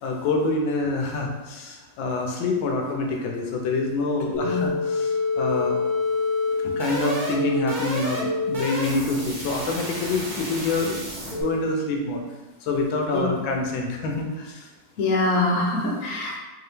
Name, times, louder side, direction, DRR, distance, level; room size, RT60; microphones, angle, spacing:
voice 1, 0.0-5.8 6.6-12.2 12.6-14.7, left 3 dB, 80° left, 1 dB, 1.3 m, -26 dB
sound 1, 4.3-11.4, left 3 dB, 40° right, 0.7 m, -27 dB
voice 2, 15.0-16.4, left 2 dB, 55° left, -2 dB, 0.9 m, -24 dB
4.1 x 2.8 x 3.3 m, 1.2 s
omnidirectional pair, 2.1 m